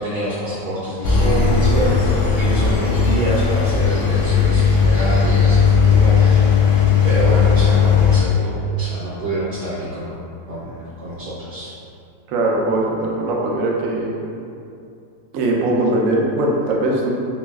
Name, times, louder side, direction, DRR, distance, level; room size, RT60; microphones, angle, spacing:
voice 1, 0.0-6.5 7.0-10.2 10.5-11.7, right 1 dB, 65° right, -10 dB, 1.2 m, -26 dB
Engine, 1.0-8.2, left 6 dB, 80° left, 1.2 m, -16 dB
voice 2, 12.3-14.2 15.3-17.1, right 1 dB, 85° right, -1 dB, 0.7 m, -20 dB
4.2 x 3.0 x 2.3 m, 2.5 s
omnidirectional pair, 2.0 m